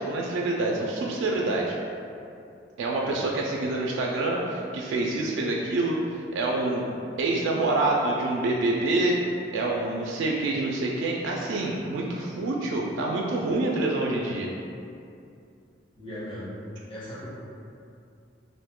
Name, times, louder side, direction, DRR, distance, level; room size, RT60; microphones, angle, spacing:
voice 1, 0.0-1.8 2.8-6.9 7.2-9.2 9.5-14.5, right 2 dB, 90° right, -1 dB, 0.3 m, -26 dB
voice 2, 15.9-16.5 16.9-17.3, left 1 dB, 30° left, -10 dB, 0.9 m, -38 dB
2.5 x 2.2 x 3.5 m, 2.5 s
head